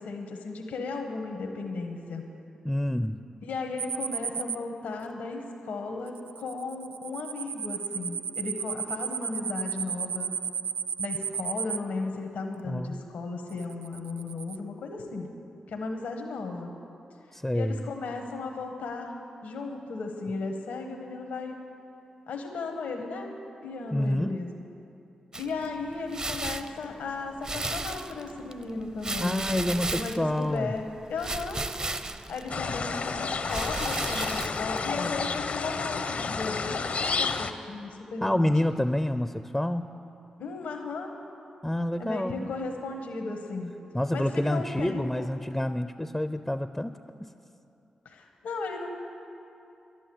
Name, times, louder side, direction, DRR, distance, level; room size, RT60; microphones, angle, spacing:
voice 1, 0.0-2.2 3.4-10.3 11.0-15.3 15.7-16.7 17.5-19.1 19.4-21.6 22.3-23.3 23.6-24.5 25.4-31.6 32.3-34.3 34.6-38.5 40.4-41.1 42.0-43.7 44.1-45.3 48.0-48.9, left 3 dB, 85° left, 3 dB, 1.1 m, -35 dB
voice 2, 2.6-3.2 12.6-13.0 17.3-17.8 23.9-24.4 29.2-30.7 38.2-39.9 41.6-42.5 43.9-46.9 47.2-47.3, left 1 dB, 10° left, 10 dB, 0.5 m, -28 dB
sound 1, 3.8-4.5 6.1-11.8 13.5-14.6, right 8 dB, 80° right, 0.4 m, -33 dB
sound 2, 25.3-35.3, right 2 dB, 35° right, 0.7 m, -36 dB
sound 3, 32.5-37.5, left 4 dB, 65° left, 0.7 m, -30 dB
11.5 x 10.5 x 7.7 m, 2.7 s
supercardioid pair, 45°, 3 cm